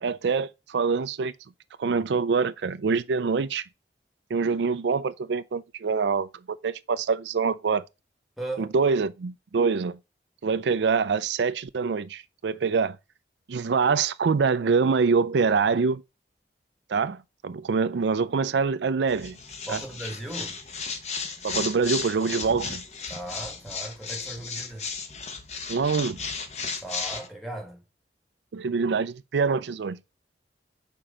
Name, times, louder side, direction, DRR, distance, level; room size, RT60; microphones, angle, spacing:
voice 1, 0.0-1.3 1.8-3.6 4.3-7.8 8.6-10.0 10.4-13.0 13.5-16.0 16.9-19.4 19.7-19.8 21.4-22.8 25.7-26.2 28.5-30.0, right 5 dB, 85° right, 0.4 m, -25 dB
voice 2, 8.4-8.7 19.7-20.6 23.1-24.9 26.8-27.8, right 1 dB, ahead, 1.3 m, -37 dB
sound 1, 19.1-27.3, left 5 dB, 40° left, 0.9 m, -35 dB
5.9 x 4.5 x 5.0 m
head